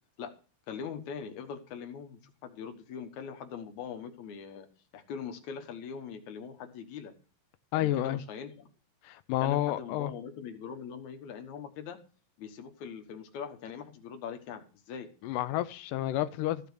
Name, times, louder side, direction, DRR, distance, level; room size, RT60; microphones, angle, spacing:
voice 1, 0.7-4.7 4.9-7.1 7.7-8.7 9.4-12.0 12.4-15.1, left 7 dB, 65° left, 2.4 m, -42 dB
voice 2, 7.7-8.2 9.0-10.1 15.2-16.7, left 14 dB, 80° left, 2.1 m, -30 dB
14.0 x 5.3 x 6.2 m
omnidirectional pair, 4.0 m